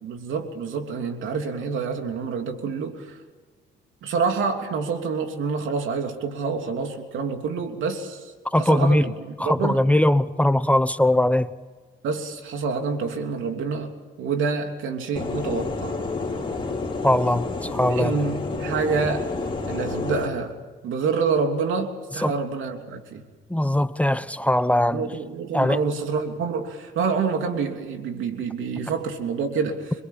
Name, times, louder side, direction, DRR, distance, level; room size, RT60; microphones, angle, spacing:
voice 1, 0.0-3.2 4.0-8.3 8.6-9.8 12.0-13.9 14.2-16.0 17.9-19.3 19.7-20.5 20.8-23.2 24.9-29.9, right 5 dB, 80° right, 3.2 m, -27 dB
voice 2, 8.5-9.0 9.4-11.5 17.0-18.1 22.2-22.3 23.5-25.1 25.5-25.8, left 1 dB, 5° left, 0.9 m, -20 dB
sound 1, 15.2-20.3, left 3 dB, 25° left, 4.6 m, -29 dB
26.5 x 23.0 x 7.4 m
cardioid pair, 90°, 20 cm